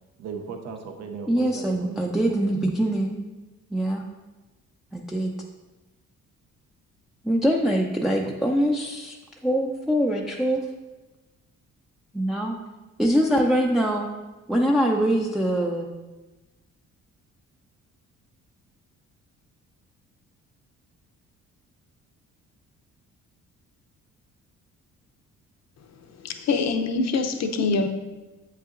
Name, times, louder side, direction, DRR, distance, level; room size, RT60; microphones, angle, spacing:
voice 1, 0.2-2.0 2.3-2.4 8.3-8.6, right 5 dB, 60° right, 5 dB, 0.7 m, -37 dB
voice 2, 1.3-3.2 3.7-4.0 4.9-5.3 7.2-10.6 12.1-12.6 13.0-14.1 14.5-15.9, equal, ahead, -1 dB, 0.5 m, -23 dB
voice 3, 26.2-27.9, left 4 dB, 60° left, 6 dB, 0.7 m, -24 dB
7.4 x 5.5 x 2.5 m, 1.2 s
cardioid pair, 90°, 30 cm